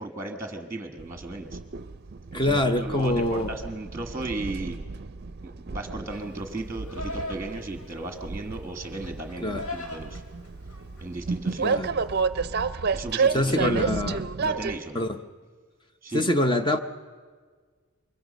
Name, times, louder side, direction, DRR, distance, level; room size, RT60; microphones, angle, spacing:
voice 1, 0.0-1.6 2.3-4.8 5.4-10.2 11.0-11.8 12.9-14.0 14.4-15.0 16.0-16.3, right 2 dB, 10° right, 6 dB, 1.3 m, -35 dB
Train, 1.0-14.8, right 5 dB, 45° right, 0.5 m, -31 dB
voice 2, 2.3-3.5 9.4-9.6 11.6-11.9 13.3-14.2 14.9-15.2 16.1-16.8, left 1 dB, 20° left, 7 dB, 0.7 m, -24 dB
Livestock farm animals working animals, 6.1-11.2, left 1 dB, 75° left, 2.6 m, -41 dB
24.0 x 22.0 x 5.3 m, 1.6 s
head